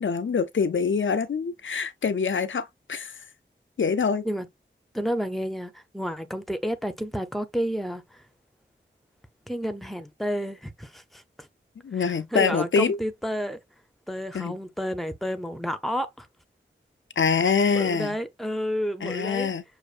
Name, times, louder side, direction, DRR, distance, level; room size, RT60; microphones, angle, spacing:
voice 1, 0.0-3.2 3.8-4.2 11.8-13.0 14.3-14.6 17.2-18.2 19.0-19.6, left 5 dB, 75° left, 0.6 m, -25 dB
voice 2, 4.9-8.2 9.5-11.5 11.9-13.6 14.1-16.3 17.7-19.5, equal, ahead, 0.7 m, -31 dB
6.5 x 2.6 x 2.5 m
wide cardioid pair, 65°, 20 cm